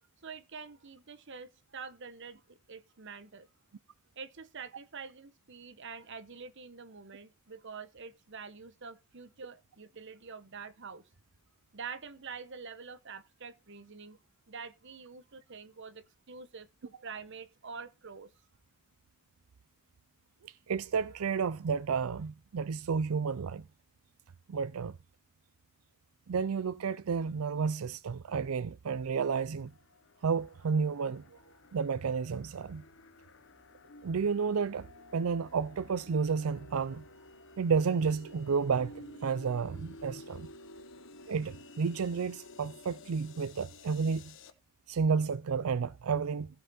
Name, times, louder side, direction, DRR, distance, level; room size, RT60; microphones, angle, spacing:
voice 1, 0.2-3.5 4.2-11.0 11.7-14.2 14.5-18.3, right 5 dB, 60° right, 1.1 m, -46 dB
voice 2, 20.4-23.6 24.5-25.0 26.3-29.7 30.2-31.4 31.7-32.8 34.0-34.9 35.1-37.0 37.6-40.5 41.3-44.3 44.9-46.5, right 5 dB, 90° right, 0.5 m, -31 dB
sound 1, 29.6-44.5, left 2 dB, 60° left, 1.2 m, -53 dB
15.5 x 5.8 x 4.3 m
head